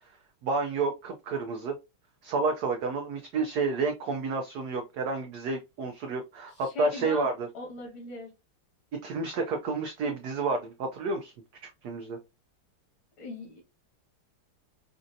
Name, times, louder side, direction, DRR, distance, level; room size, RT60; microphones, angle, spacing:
voice 1, 0.4-1.7 2.2-7.5 8.9-11.3 11.6-12.2, right 3 dB, 90° right, 4 dB, 0.8 m, -30 dB
voice 2, 6.6-7.3 7.5-8.3 13.2-13.6, left 2 dB, 70° left, 1 dB, 2.5 m, -39 dB
5.2 x 2.6 x 2.5 m, 0.25 s
omnidirectional pair, 2.3 m